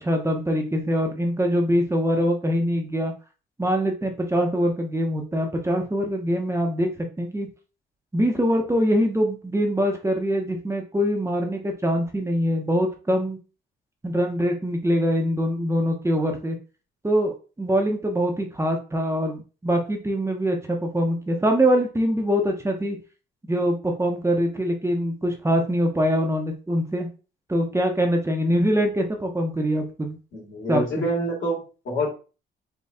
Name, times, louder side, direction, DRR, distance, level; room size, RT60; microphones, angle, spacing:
voice 1, 0.0-3.1 3.6-7.5 8.1-13.4 14.0-16.6 17.0-23.0 23.5-27.1 27.5-30.2 30.7-30.8, equal, 15° right, 2 dB, 0.9 m, -23 dB
voice 2, 30.3-32.1, equal, 70° left, -3 dB, 2.4 m, -27 dB
4.2 x 3.0 x 3.6 m, 0.34 s
cardioid pair, 90°, 20 cm